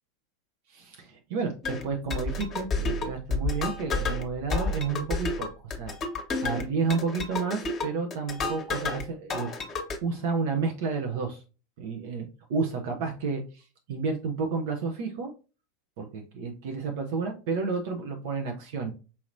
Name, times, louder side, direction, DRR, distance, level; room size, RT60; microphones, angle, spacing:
voice 1, 0.7-5.9 6.4-9.6 10.0-11.4 11.8-15.3 16.0-18.9, right 4 dB, 55° right, 3 dB, 0.8 m, -31 dB
sound 1, 1.6-9.0 9.3-10.0, left 3 dB, 25° left, 1.1 m, -31 dB
5.6 x 2.9 x 2.5 m, 0.32 s
figure-of-eight pair, 85°, 0 cm